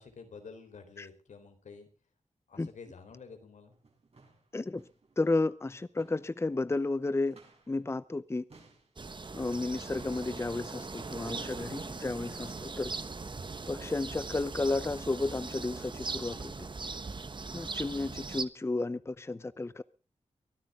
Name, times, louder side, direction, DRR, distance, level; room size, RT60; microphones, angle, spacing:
voice 1, 0.0-1.9 2.5-3.8, left 5 dB, 85° left, 4.0 m, -50 dB
sound 1, 3.6-12.9 14.1-14.3 14.6-15.3 15.6-15.9 16.4-16.6 16.9-17.1 17.6-17.8 18.3-18.4 19.1-19.2, right 3 dB, 55° right, 6.9 m, -61 dB
voice 2, 5.2-7.4 7.7-8.4 9.3-12.9 13.7-16.5 17.5-19.8, left 2 dB, 20° left, 0.6 m, -32 dB
sound 2, 9.0-18.4, right 4 dB, 40° right, 1.2 m, -40 dB
23.5 x 12.5 x 3.7 m
cardioid pair, 70°, 12 cm